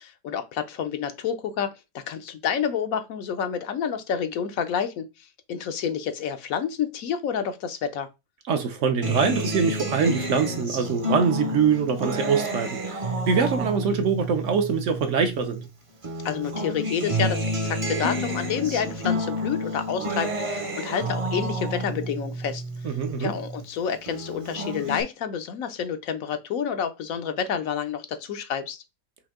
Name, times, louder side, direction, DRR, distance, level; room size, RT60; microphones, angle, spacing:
voice 1, 0.0-8.1 16.2-22.6 23.2-28.8, left 7 dB, 75° left, 1.0 m, -29 dB
voice 2, 8.5-15.6 22.8-23.3, right 6 dB, 60° right, 1.0 m, -24 dB
Acoustic guitar, 9.0-15.7 16.0-23.7 24.1-25.0, equal, 30° right, 0.6 m, -30 dB
5.3 x 2.7 x 3.6 m
omnidirectional pair, 1.5 m